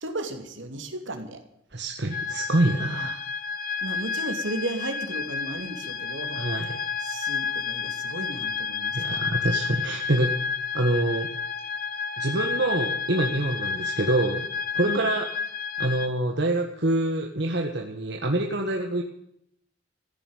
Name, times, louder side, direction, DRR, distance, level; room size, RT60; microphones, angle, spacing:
voice 1, 0.0-1.4 2.9-3.1 3.8-6.4 7.0-9.2 14.9-15.1, right 1 dB, 75° right, 6 dB, 2.9 m, -34 dB
voice 2, 1.7-3.2 6.4-6.8 8.9-10.3 10.7-11.3 12.2-14.5 14.8-15.3 15.8-19.0, right 1 dB, 60° right, 2 dB, 1.6 m, -26 dB
sound 1, 2.1-16.1, left 6 dB, 45° left, 1.3 m, -31 dB
15.5 x 10.0 x 9.1 m, 0.75 s
head